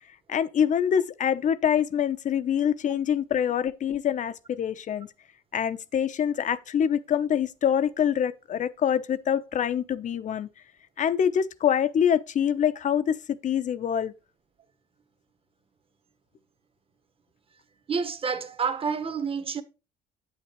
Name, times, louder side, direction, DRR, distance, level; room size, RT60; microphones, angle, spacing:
voice 1, 0.3-5.1 5.5-10.5 11.0-14.1, left 8 dB, 45° left, 0.9 m, -25 dB
voice 2, 17.9-19.6, right 5 dB, 35° right, 1.5 m, -29 dB
9.0 x 8.8 x 3.1 m
cardioid pair, 110°, 17 cm